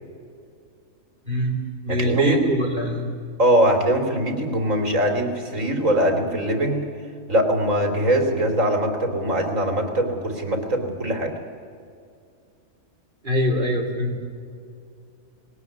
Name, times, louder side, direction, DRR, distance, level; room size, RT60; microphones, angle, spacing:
voice 1, 1.3-1.6 1.8-3.1 13.2-14.2, equal, 35° right, 2 dB, 3.6 m, -23 dB
voice 2, 1.9-2.4 3.4-6.8 7.3-11.3, right 1 dB, 70° right, 5 dB, 3.5 m, -22 dB
20.0 x 18.5 x 9.5 m, 2.3 s
omnidirectional pair, 1.4 m